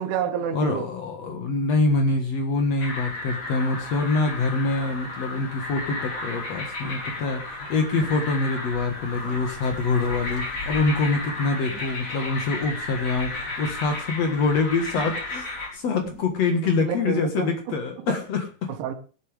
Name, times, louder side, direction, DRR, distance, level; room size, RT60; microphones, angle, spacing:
voice 1, 0.0-0.9 16.6-17.5 18.8-18.9, right 7 dB, 75° right, 3.9 m, -28 dB
voice 2, 0.5-15.4 15.7-18.7, left 3 dB, 75° left, 1.5 m, -25 dB
sound 1, 2.8-15.7, left 2 dB, 35° left, 5.1 m, -33 dB
sound 2, 6.8-6.9 7.1-16.3, right 2 dB, 25° right, 4.3 m, -48 dB
19.0 x 11.0 x 3.5 m
omnidirectional pair, 5.6 m